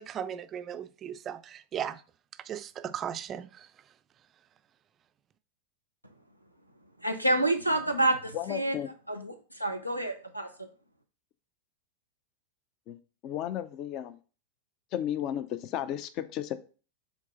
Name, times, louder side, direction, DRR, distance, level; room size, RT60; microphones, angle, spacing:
voice 1, 0.0-2.0 2.4-3.7, right 9 dB, 30° right, 0.4 m, -37 dB
voice 2, 7.0-8.7 9.1-10.7, right 1 dB, 90° left, 0.9 m, -28 dB
voice 3, 8.3-8.9 12.9-13.0 13.2-14.2 14.9-16.5, left 11 dB, 40° left, 0.5 m, -33 dB
7.2 x 3.9 x 3.8 m
figure-of-eight pair, 90°, 0 cm